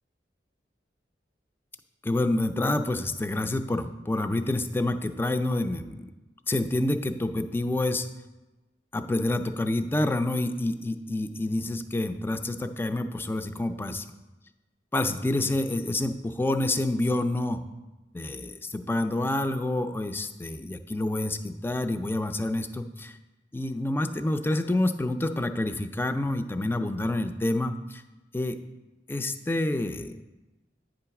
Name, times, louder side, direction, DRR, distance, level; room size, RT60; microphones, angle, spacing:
voice 1, 2.0-6.1 6.5-8.1 8.9-14.0 14.9-17.6 18.1-23.1 23.5-28.0 28.3-28.6 29.1-30.2, left 1 dB, 15° left, 8 dB, 0.4 m, -28 dB
9.0 x 3.9 x 5.8 m, 1.1 s
head